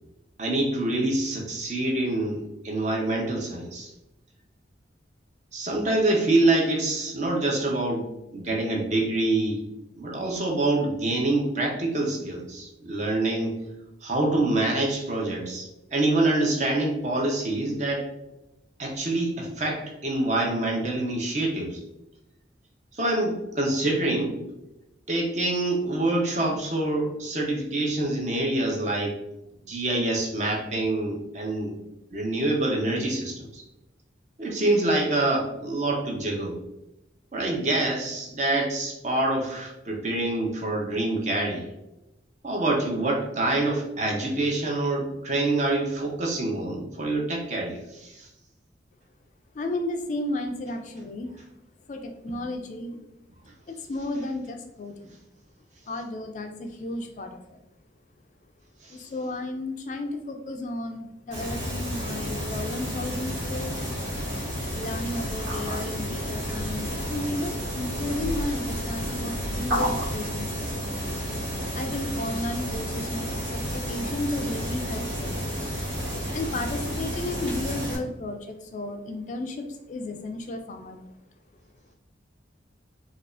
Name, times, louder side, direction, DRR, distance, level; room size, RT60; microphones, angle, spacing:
voice 1, 0.4-3.9 5.5-8.1 8.3-9.6 10.0-13.6 14.0-18.1 18.8-21.8 22.9-24.4 25.1-29.2 29.7-31.8 32.1-33.6 34.4-36.5 37.3-41.7 42.4-48.3 58.8-59.0, right 2 dB, 40° right, 0 dB, 0.7 m, -26 dB
voice 2, 49.5-51.3 51.9-53.0 53.7-55.2 55.9-57.6 58.9-63.8 64.7-70.9 71.7-75.4 76.3-81.0, left 2 dB, 40° left, 5 dB, 0.3 m, -33 dB
sound 1, 61.3-78.0, equal, 85° right, 1.4 m, -31 dB
4.6 x 2.4 x 2.5 m, 0.92 s
head